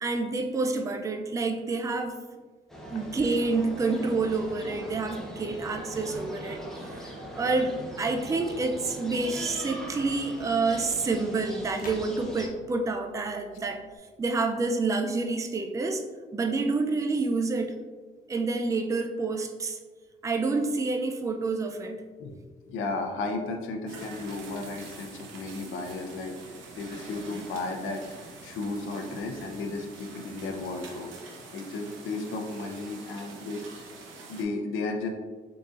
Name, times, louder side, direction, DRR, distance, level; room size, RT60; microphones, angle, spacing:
voice 1, 0.0-2.2 2.9-6.6 6.9-13.8 14.2-16.0 16.3-17.8 18.3-19.8 20.2-22.0, right 3 dB, 15° right, 5 dB, 0.3 m, -28 dB
sound 1, 2.7-12.5, right 1 dB, ahead, 0.7 m, -40 dB
sound 2, 3.9-14.0, equal, 45° left, 1.0 m, -49 dB
voice 2, 22.7-31.1 31.5-33.9 34.3-35.1, left 3 dB, 85° left, 3 dB, 0.6 m, -34 dB
sound 3, 23.9-34.4, right 3 dB, 80° right, 0.7 m, -46 dB
3.8 x 3.8 x 2.4 m, 1.4 s
cardioid pair, 90°, 20 cm